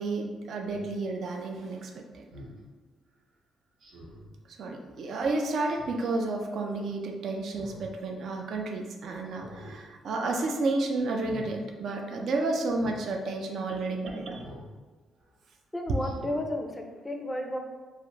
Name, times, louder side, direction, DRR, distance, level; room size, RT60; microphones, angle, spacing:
voice 1, 0.0-2.2 4.6-14.4 15.9-16.0, right 3 dB, 65° right, 2 dB, 0.3 m, -31 dB
Speech synthesizer, 0.6-0.8 2.3-2.6 3.8-4.3 5.6-6.1 7.4-7.9 8.3-8.4 9.2-9.8 10.1-10.4 11.1-11.5 12.7-13.0 14.3-14.7 15.2-15.3 16.0-16.5 16.9-17.0, equal, 80° right, 0.8 m, -47 dB
voice 2, 15.7-17.6, left 1 dB, 10° left, 2 dB, 0.4 m, -33 dB
2.4 x 2.4 x 3.0 m, 1.3 s
cardioid pair, 90°, 0 cm